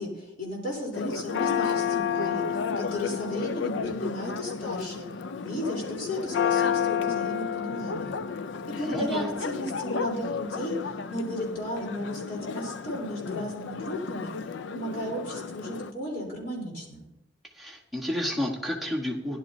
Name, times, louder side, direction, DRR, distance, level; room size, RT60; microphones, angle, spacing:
voice 1, 0.0-5.1 5.4-8.1 8.8-14.3 14.7-17.0, equal, 45° left, -2 dB, 3.7 m, -34 dB
Church bell, 0.9-15.9, left 6 dB, 65° left, 0.4 m, -31 dB
voice 2, 8.7-9.3 17.5-19.4, left 1 dB, ahead, -2 dB, 1.3 m, -31 dB
16.5 x 11.0 x 2.7 m, 0.95 s
head